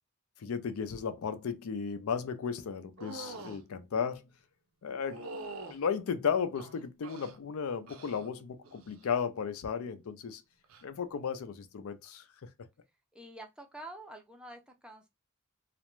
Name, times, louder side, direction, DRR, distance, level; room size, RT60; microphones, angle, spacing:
voice 1, 0.4-4.3 4.8-5.2 5.7-10.4 10.8-12.5, left 6 dB, 80° left, 0.4 m, -34 dB
sound 1, 3.0-3.6 5.0-5.8 6.5-7.4 7.9-8.3 8.6-9.1 10.6-10.8, right 3 dB, 70° right, 0.5 m, -45 dB
voice 2, 13.1-15.1, right 1 dB, 5° right, 0.4 m, -47 dB
2.4 x 2.1 x 3.0 m
head